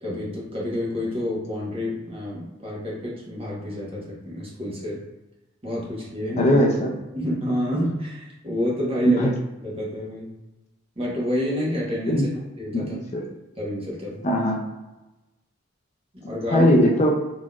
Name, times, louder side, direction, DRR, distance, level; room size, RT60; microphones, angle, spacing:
voice 1, 0.0-5.0 5.6-6.6 7.1-9.3 9.6-10.3 11.0-12.3 12.6-13.0 13.6-14.3 16.1-16.7, left 1 dB, 30° right, -5 dB, 1.1 m, -28 dB
voice 2, 6.4-6.9 9.2-9.3 12.1-12.3 12.7-13.2 14.2-14.6 16.5-17.1, left 1 dB, 35° left, 0 dB, 0.4 m, -20 dB
3.8 x 3.0 x 2.4 m, 1.0 s
head